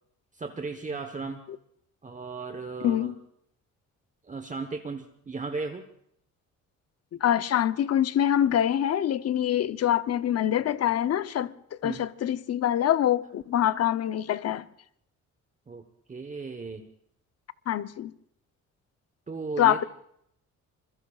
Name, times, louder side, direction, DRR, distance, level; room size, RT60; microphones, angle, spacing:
voice 1, 0.3-1.4 2.0-3.1 4.2-5.9 11.8-12.1 15.7-15.8 16.1-16.9 19.3-19.8, right 4 dB, 25° right, 1.1 m, -36 dB
voice 2, 2.8-3.2 7.2-14.7 17.7-18.1 19.6-19.8, left 11 dB, 55° left, 0.7 m, -25 dB
26.0 x 22.0 x 2.4 m
cardioid pair, 90°, 30 cm